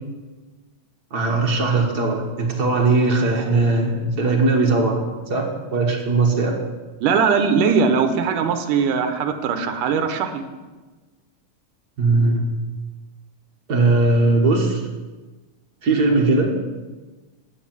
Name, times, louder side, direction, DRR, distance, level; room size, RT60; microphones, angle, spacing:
voice 1, 1.1-5.4 5.7-6.5 12.0-12.4 13.7-14.8 15.8-16.6, right 3 dB, 50° right, 0 dB, 1.2 m, -19 dB
voice 2, 7.0-10.4, right 6 dB, 75° right, 7 dB, 2.5 m, -20 dB
10.5 x 6.5 x 8.8 m, 1.3 s
omnidirectional pair, 3.8 m